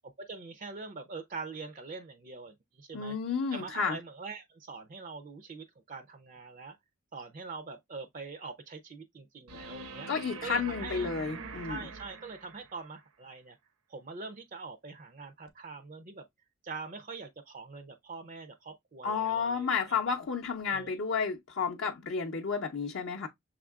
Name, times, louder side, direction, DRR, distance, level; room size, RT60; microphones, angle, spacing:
voice 1, 0.2-3.1 3.5-6.8 7.1-10.1 10.4-11.1 11.7-13.6 13.9-16.2 16.6-20.0 20.7-20.9, right 4 dB, 35° right, 0.4 m, -43 dB
voice 2, 2.9-4.0 10.1-11.8 19.0-23.3, left 5 dB, 60° left, 0.6 m, -31 dB
sound 1, 9.5-12.8 15.5-15.6, right 2 dB, 85° right, 0.8 m, -43 dB
6.3 x 3.6 x 2.3 m
head